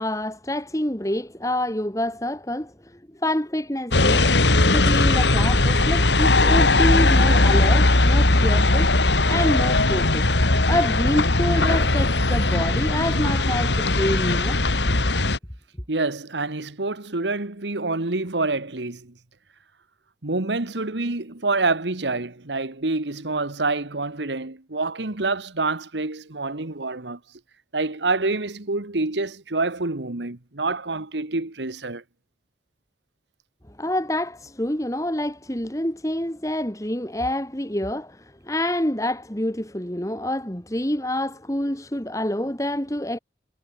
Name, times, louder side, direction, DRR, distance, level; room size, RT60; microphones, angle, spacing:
voice 1, 0.0-4.3 4.7-8.9 9.3-10.2 10.7-14.6 33.8-43.2, left 1 dB, 20° left, 2.2 m, -27 dB
sound 1, 3.9-15.4, left 2 dB, 90° left, 2.8 m, -19 dB
voice 2, 15.9-19.1 20.2-27.2 27.7-32.0, right 3 dB, 90° right, 1.7 m, -27 dB
head